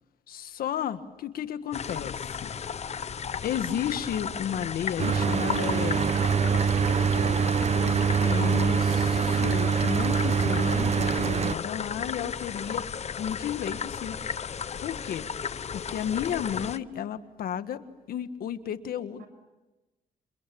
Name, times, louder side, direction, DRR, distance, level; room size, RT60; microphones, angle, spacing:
voice 1, 0.3-2.5 3.4-6.1 7.7-12.9 13.2-14.5 14.7-15.3 15.7-19.2, left 9 dB, 80° left, 11 dB, 1.6 m, -33 dB
sound 1, 1.7-16.8, left 7 dB, 45° left, 0.9 m, -35 dB
Mechanical fan, 5.0-11.6, right 6 dB, 45° right, 1.0 m, -24 dB
voice 2, 6.6-7.6 19.0-19.3, right 2 dB, 85° right, 9 dB, 6.9 m, -45 dB
29.0 x 28.5 x 7.1 m, 1.1 s
cardioid pair, 85°, 15 cm